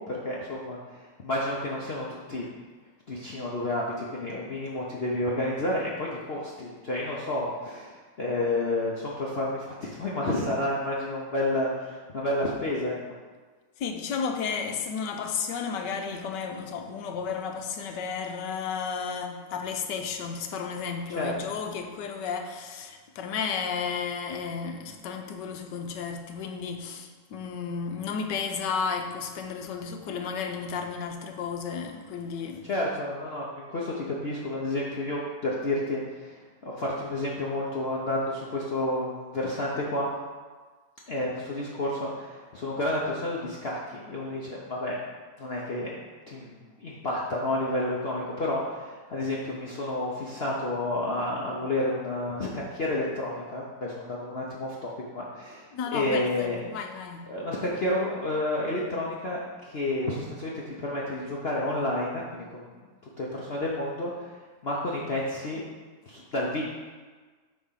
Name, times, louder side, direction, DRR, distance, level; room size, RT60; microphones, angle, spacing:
voice 1, 0.0-2.5 3.1-13.0 21.1-21.3 32.6-40.1 41.1-45.0 45.4-45.9 46.3-56.6 57.3-62.6 63.2-64.3 64.6-65.7 66.1-66.6, left 1 dB, 50° left, -4 dB, 0.7 m, -30 dB
voice 2, 13.8-32.7 55.7-57.3, left 6 dB, 75° left, 4 dB, 1.3 m, -33 dB
8.3 x 3.4 x 5.6 m, 1.4 s
omnidirectional pair, 2.0 m